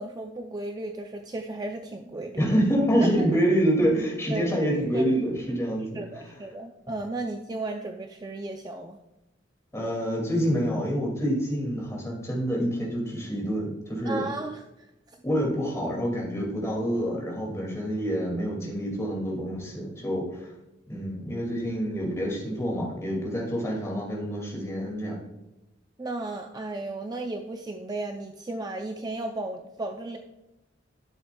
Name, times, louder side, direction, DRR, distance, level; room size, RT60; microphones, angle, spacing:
voice 1, 0.0-2.5 3.0-3.4 4.3-5.1 5.9-9.0 14.0-15.2 26.0-30.2, right 2 dB, 20° right, 4 dB, 0.4 m, -34 dB
voice 2, 2.4-6.0 9.7-14.2 15.2-20.5 20.9-25.2, equal, 15° left, -2 dB, 2.2 m, -27 dB
12.5 x 6.9 x 2.2 m, 0.95 s
head